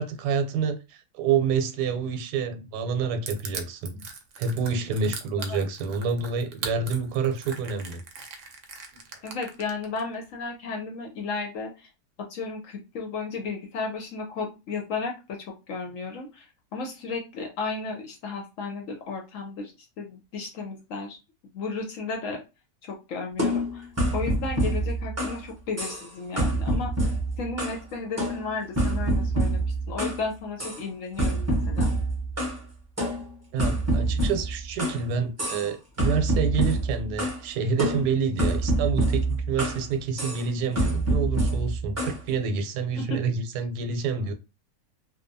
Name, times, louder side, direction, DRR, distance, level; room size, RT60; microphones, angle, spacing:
voice 1, 0.0-4.0 4.4-8.0 33.5-44.3, right 5 dB, 85° right, 1.1 m, -28 dB
Crushing, 3.3-10.0, right 5 dB, 65° right, 0.8 m, -39 dB
voice 2, 9.2-11.9 12.3-16.5 16.7-21.2 21.5-22.4 22.8-27.1 27.4-31.9 43.0-43.2, left 4 dB, 70° left, 0.8 m, -34 dB
sound 1, 23.4-25.4 25.8-26.1 26.4-27.8 28.2-30.2 30.6-30.8 31.2-32.6 33.0-35.0 35.4-35.7 36.0-37.4 37.8-39.8 40.2-40.4 40.8-42.2, right 1 dB, 25° right, 0.3 m, -26 dB
2.7 x 2.2 x 2.6 m
omnidirectional pair, 1.7 m